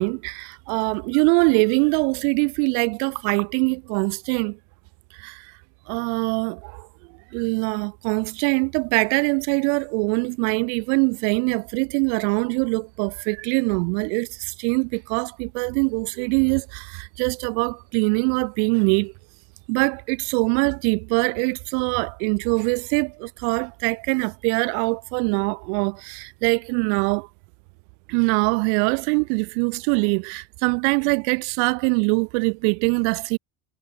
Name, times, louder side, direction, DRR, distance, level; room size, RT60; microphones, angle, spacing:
voice 1, 0.0-4.6 5.2-5.5 5.9-6.9 7.3-19.1 19.7-27.3 28.1-33.4, right 40 dB or more, 85° right, 1.1 m, -23 dB
cardioid pair, 120°, 33 cm